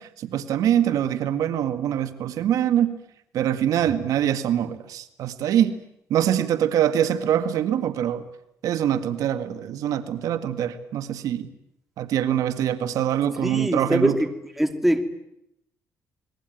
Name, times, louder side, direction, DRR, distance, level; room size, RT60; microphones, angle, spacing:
voice 1, 0.0-2.9 3.3-5.8 6.1-8.2 8.6-11.5 12.0-14.2, right 10 dB, 80° right, 10 dB, 1.8 m, -24 dB
voice 2, 13.4-14.3 14.6-15.0, equal, 5° right, 6 dB, 2.5 m, -22 dB
29.0 x 21.0 x 9.2 m, 0.79 s
cardioid pair, 130°, 6 cm